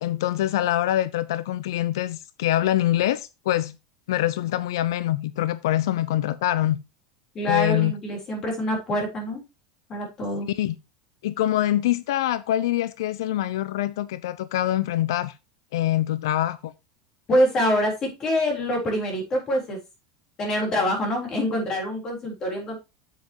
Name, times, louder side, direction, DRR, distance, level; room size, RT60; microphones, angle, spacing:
voice 1, 0.0-3.7 4.1-6.8 7.4-7.9 10.5-10.7 11.2-15.3 15.7-16.7, left 13 dB, 85° left, 0.5 m, -24 dB
voice 2, 7.3-9.4 9.9-10.5 17.3-19.8 20.4-22.8, left 1 dB, 25° left, 3.7 m, -25 dB
9.0 x 7.6 x 3.0 m
supercardioid pair, 165°, 2 cm